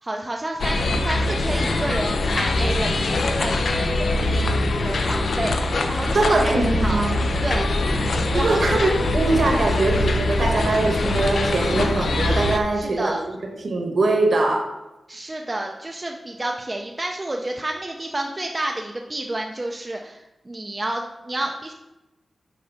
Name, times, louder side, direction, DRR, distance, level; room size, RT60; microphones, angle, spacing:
voice 1, 0.0-4.5 4.8-7.0 7.4-7.7 8.4-8.6 12.7-13.2 15.1-21.7, right 1 dB, 20° right, 1 dB, 0.5 m, -30 dB
sound 1, 0.6-12.6, left 2 dB, 70° left, 0.6 m, -23 dB
voice 2, 6.1-7.2 8.3-14.7, right 2 dB, 60° right, 2 dB, 1.3 m, -22 dB
6.7 x 4.3 x 5.6 m, 0.99 s
wide cardioid pair, 155°, 0 cm